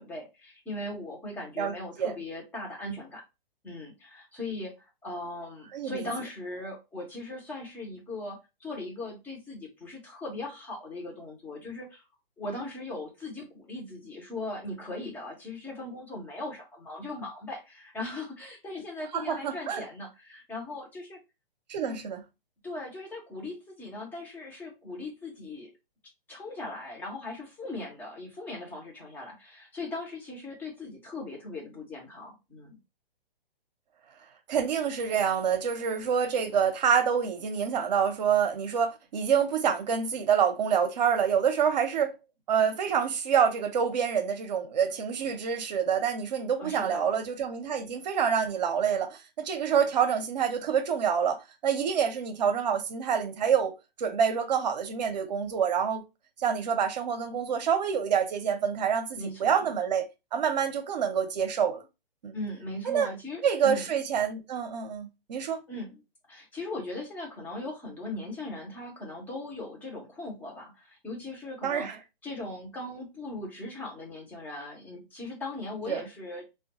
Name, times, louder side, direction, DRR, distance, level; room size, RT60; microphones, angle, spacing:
voice 1, 0.0-3.2 3.6-12.0 12.4-21.2 21.8-22.0 22.6-25.7 26.3-32.8 46.6-47.1 59.2-59.6 62.3-63.9 65.7-66.0 66.3-71.9 72.2-76.5, left 2 dB, 5° left, 0.6 m, -39 dB
voice 2, 5.7-6.1 19.1-19.8 21.7-22.2 34.5-42.1 42.5-53.7 54.0-56.0 56.4-60.0 60.3-61.8 62.2-62.4 62.8-63.1 63.4-65.6 71.6-72.0 75.9-76.0, right 7 dB, 45° right, 0.7 m, -27 dB
3.4 x 2.3 x 2.8 m
figure-of-eight pair, 135°, 30 cm